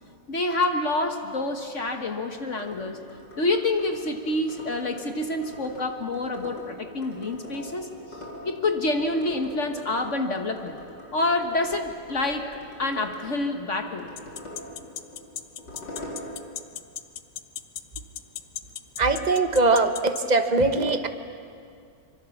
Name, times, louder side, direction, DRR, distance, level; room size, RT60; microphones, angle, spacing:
voice 1, 0.3-3.0 3.3-7.9 8.4-10.8 11.1-12.5 12.8-14.1, left 2 dB, 45° left, 5 dB, 1.5 m, -27 dB
sound 1, 2.5-16.6, equal, 80° left, 4.8 m, -43 dB
sound 2, 14.2-20.2, left 10 dB, 65° left, 1.3 m, -35 dB
voice 2, 19.0-21.1, right 3 dB, 30° right, 8 dB, 1.0 m, -21 dB
25.0 x 23.5 x 7.1 m, 2.3 s
omnidirectional pair, 1.9 m